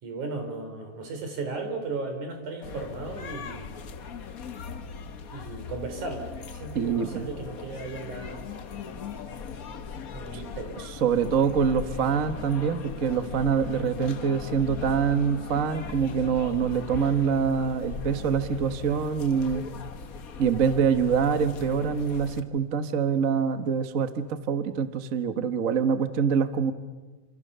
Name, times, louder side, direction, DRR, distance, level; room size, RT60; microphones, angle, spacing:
voice 1, 0.0-3.6 5.3-8.5 10.1-10.8, right 3 dB, 85° right, 5 dB, 5.4 m, -35 dB
sound 1, 2.6-22.4, left 5 dB, 65° left, 0.8 m, -39 dB
voice 2, 6.7-7.3 10.3-10.4 11.0-19.7 20.4-26.7, right 6 dB, 45° right, 10 dB, 1.1 m, -25 dB
29.0 x 27.0 x 6.8 m, 1.2 s
omnidirectional pair, 3.4 m